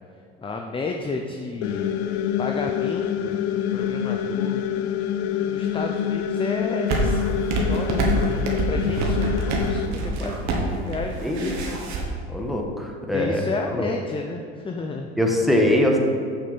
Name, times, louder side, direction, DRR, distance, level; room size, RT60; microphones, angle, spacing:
voice 1, 0.4-1.9 2.4-4.8 5.5-11.8 13.1-15.1, left 3 dB, 15° left, 3 dB, 0.6 m, -32 dB
sound 1, 1.6-9.9, left 9 dB, 70° left, 0.6 m, -26 dB
sound 2, 6.9-12.0, right 2 dB, 55° right, 1.6 m, -25 dB
voice 2, 11.2-11.5 12.3-13.4 13.8-13.9 15.2-16.0, left 1 dB, ahead, 0 dB, 1.4 m, -22 dB
6.7 x 6.1 x 5.8 m, 2.3 s
hypercardioid pair, 70°, 34 cm